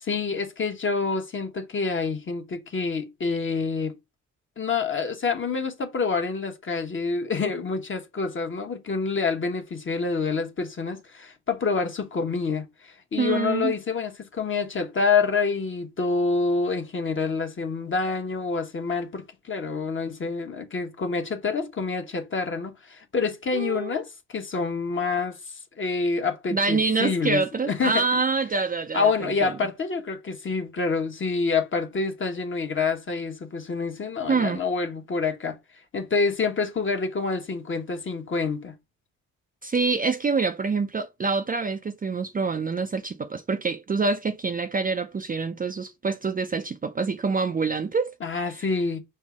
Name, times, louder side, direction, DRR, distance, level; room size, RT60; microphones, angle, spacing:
voice 1, 0.0-4.0 4.6-28.0 28.9-35.6 35.9-38.7 48.2-49.0, left 4 dB, 40° left, 1.1 m, -27 dB
voice 2, 13.2-13.7 23.5-23.9 26.5-29.1 29.4-29.5 34.3-34.6 39.6-48.1 48.4-48.7, right 4 dB, 25° right, 0.5 m, -26 dB
5.5 x 2.0 x 4.7 m
supercardioid pair, 65°, 32 cm